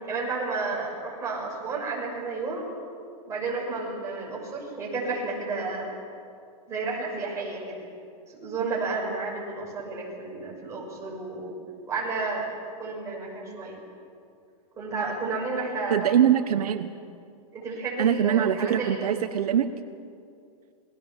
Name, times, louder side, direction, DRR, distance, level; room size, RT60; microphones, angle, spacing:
voice 1, 0.1-2.7 3.3-5.9 6.7-7.9 8.3-11.5 11.9-12.5 12.8-13.8 14.8-16.1 17.5-19.1, right 3 dB, 15° right, -3 dB, 6.0 m, -31 dB
voice 2, 15.9-16.9 18.0-19.7, right 9 dB, 80° right, 9 dB, 1.2 m, -23 dB
27.5 x 20.5 x 7.3 m, 2.4 s
hypercardioid pair, 155°, 19 cm